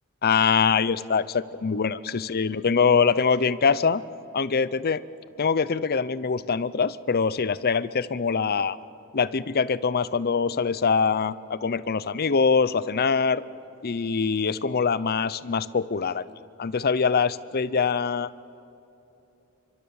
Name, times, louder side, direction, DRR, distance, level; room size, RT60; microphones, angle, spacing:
voice 1, 0.2-4.0 4.3-5.0 5.4-8.8 9.1-13.4 13.8-16.2 16.6-18.3, left 5 dB, 45° left, 17 dB, 0.6 m, -23 dB
29.0 x 24.5 x 7.2 m, 3.0 s
head